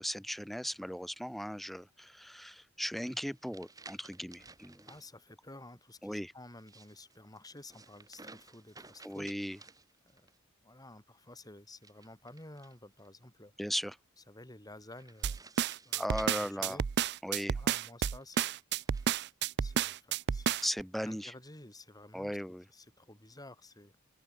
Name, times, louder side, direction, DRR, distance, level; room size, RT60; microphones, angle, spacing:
voice 1, 0.0-4.9 6.0-6.3 9.0-9.6 13.6-14.0 15.9-16.8 17.2-17.6 20.6-21.3 22.1-22.6, equal, ahead, 1.2 m, -37 dB
sound 1, 3.0-5.1 6.5-10.4 11.7-13.1 14.9-17.3 18.1-19.1, right 3 dB, 15° right, 2.3 m, -56 dB
voice 2, 4.8-9.4 10.0-10.3 10.6-13.6 14.2-15.4 15.8-16.9 17.5-18.5 19.6-20.6 21.0-22.4 22.7-23.9, left 2 dB, 20° left, 7.2 m, -52 dB
sound 2, 15.2-20.8, right 8 dB, 55° right, 0.4 m, -31 dB
open air
head